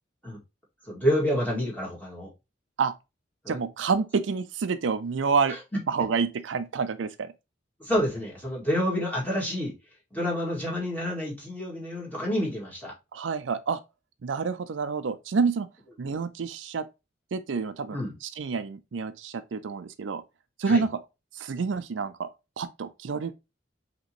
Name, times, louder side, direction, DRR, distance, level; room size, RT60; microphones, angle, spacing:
voice 1, 0.9-2.3 3.4-3.6 5.5-5.6 7.8-9.7 10.1-12.9 17.9-18.1 20.7-20.8, equal, 10° left, 2.0 m, -28 dB
voice 2, 3.5-5.6 5.9-7.3 13.1-13.8 14.2-15.7 16.0-16.8 17.3-20.2 20.6-20.9 21.3-22.3 22.6-23.3, right 5 dB, 80° right, 0.4 m, -28 dB
5.2 x 3.0 x 2.9 m
head